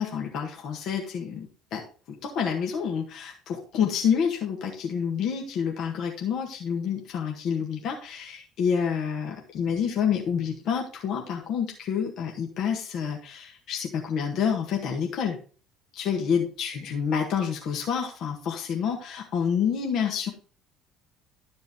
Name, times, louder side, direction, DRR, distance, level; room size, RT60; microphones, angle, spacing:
voice 1, 0.0-1.8 2.2-15.4 15.9-20.3, left 7 dB, 60° left, 1 dB, 1.7 m, -28 dB
12.0 x 5.2 x 3.6 m, 0.39 s
hypercardioid pair, 60°, 0 cm